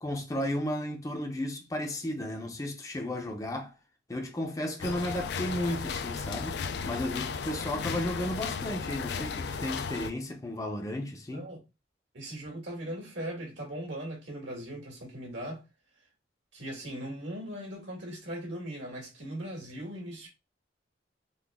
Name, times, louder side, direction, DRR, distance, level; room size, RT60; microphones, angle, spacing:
voice 1, 0.0-3.7 4.1-11.5, left 1 dB, 20° left, 0.6 m, -34 dB
sound 1, 4.8-10.1, left 5 dB, 65° left, 0.3 m, -35 dB
voice 2, 12.1-15.6 16.5-20.3, right 1 dB, 75° right, 1.8 m, -39 dB
3.9 x 2.2 x 3.5 m
head